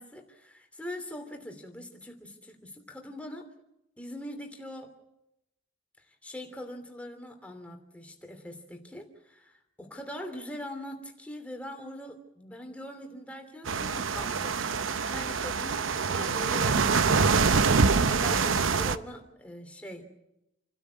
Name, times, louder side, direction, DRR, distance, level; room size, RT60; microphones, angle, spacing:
voice 1, 0.0-3.5 4.0-4.9 6.0-20.0, left 1 dB, 5° left, 4 dB, 2.9 m, -42 dB
sound 1, 13.7-19.0, right 5 dB, 90° right, 0.8 m, -25 dB
28.0 x 13.0 x 9.5 m, 0.89 s
head